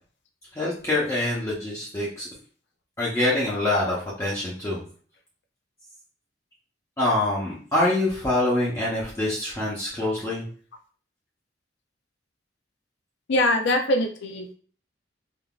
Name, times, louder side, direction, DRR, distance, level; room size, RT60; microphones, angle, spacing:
voice 1, 0.5-2.3 3.0-4.8 7.0-10.5, left 1 dB, 15° left, -7 dB, 0.8 m, -25 dB
voice 2, 13.3-14.5, left 1 dB, 65° left, 4 dB, 0.5 m, -23 dB
3.6 x 2.6 x 2.4 m, 0.43 s
head